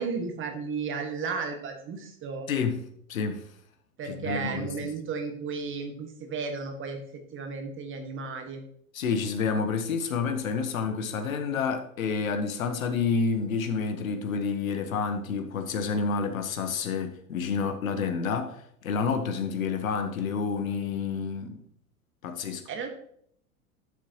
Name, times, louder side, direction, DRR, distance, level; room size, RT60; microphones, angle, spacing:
voice 1, 0.0-2.5 4.0-8.6 22.7-22.9, right 5 dB, 25° right, 1.8 m, -34 dB
voice 2, 2.5-3.5 4.1-4.9 8.9-21.6 22.2-22.6, left 5 dB, 65° left, 1.3 m, -29 dB
11.0 x 6.9 x 3.0 m
figure-of-eight pair, 85°, 43 cm